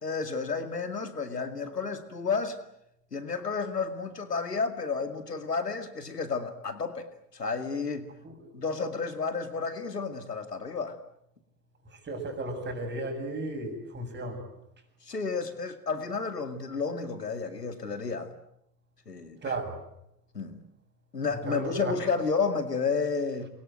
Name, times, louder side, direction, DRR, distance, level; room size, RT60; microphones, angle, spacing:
voice 1, 0.0-2.6 3.1-7.1 7.3-8.1 8.5-11.0 15.0-18.3 19.1-19.5 20.3-20.6 21.1-23.5, left 4 dB, 85° left, 9 dB, 2.4 m, -31 dB
voice 2, 12.1-14.4 19.4-19.8 21.5-22.0, right 2 dB, 20° right, 5 dB, 7.7 m, -34 dB
28.0 x 23.0 x 9.1 m, 0.80 s
figure-of-eight pair, 85°, 46 cm